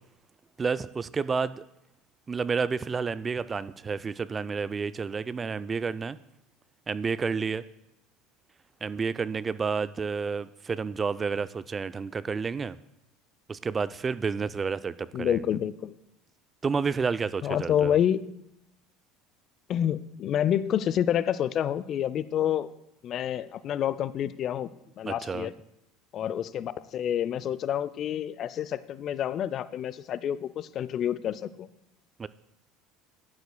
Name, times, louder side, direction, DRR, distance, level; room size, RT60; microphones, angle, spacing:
voice 1, 0.6-1.6 2.3-6.2 6.9-7.6 8.8-12.8 13.5-15.4 16.6-18.0 25.0-25.5 32.2-32.3, right 5 dB, 30° right, 15 dB, 0.4 m, -30 dB
voice 2, 15.1-16.0 17.4-18.2 19.7-22.7 23.0-24.7 25.0-25.5 26.1-31.7, left 10 dB, 50° left, 17 dB, 0.5 m, -28 dB
15.5 x 11.0 x 2.3 m, 0.83 s
hypercardioid pair, 75°, 0 cm